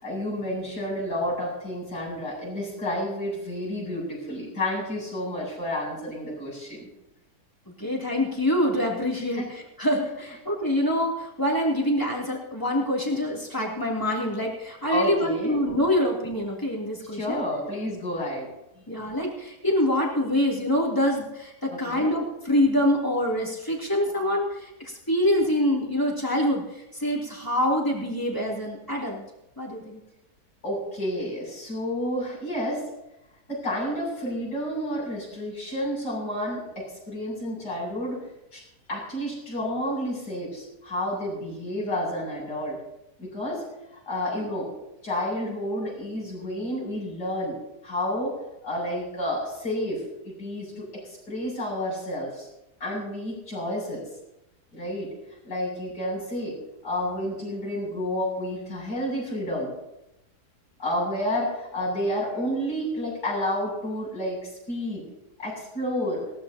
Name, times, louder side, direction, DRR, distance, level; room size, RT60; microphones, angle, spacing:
voice 1, 0.0-6.9 9.4-9.5 14.9-15.6 17.1-18.5 18.7-18.9 21.7-22.1 30.6-32.8 33.5-38.3 38.5-38.6 38.9-42.8 43.2-43.6 44.1-44.7 45.0-47.6 47.8-48.4 48.6-52.5 52.8-54.1 54.7-55.1 55.4-56.6 56.8-59.7 60.8-65.0 65.4-66.2, left 1 dB, 75° left, -4 dB, 8.2 m, -30 dB
voice 2, 7.8-17.4 18.9-29.2 29.6-30.0, left 1 dB, 10° left, -3 dB, 3.1 m, -25 dB
20.0 x 17.5 x 2.9 m, 0.91 s
omnidirectional pair, 1.7 m